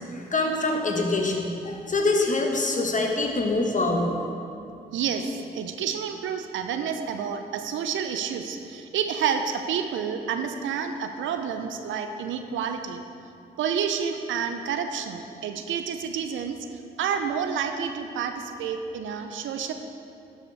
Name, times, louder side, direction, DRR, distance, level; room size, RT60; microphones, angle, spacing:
voice 1, 0.1-4.1, left 2 dB, 35° left, 1 dB, 1.4 m, -25 dB
voice 2, 4.9-13.0 13.6-16.6 17.0-19.7, right 7 dB, 70° right, 7 dB, 0.6 m, -29 dB
12.0 x 5.5 x 3.4 m, 2.7 s
hypercardioid pair, 40°, 21 cm